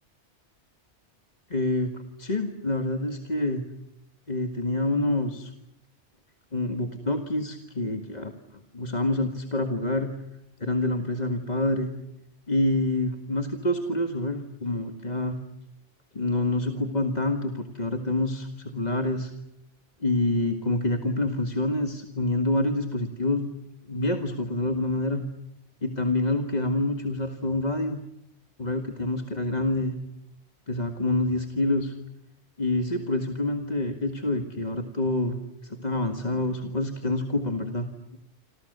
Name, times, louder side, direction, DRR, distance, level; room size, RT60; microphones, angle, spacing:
voice 1, 1.5-3.6 4.3-5.5 6.5-10.1 10.6-11.9 12.5-15.4 16.1-19.3 20.0-23.5 23.8-25.2 25.8-28.0 28.6-30.0 30.7-31.9 32.6-38.2, left 2 dB, 35° left, 5 dB, 1.8 m, -27 dB
27.5 x 27.5 x 6.7 m, 0.81 s
omnidirectional pair, 1.2 m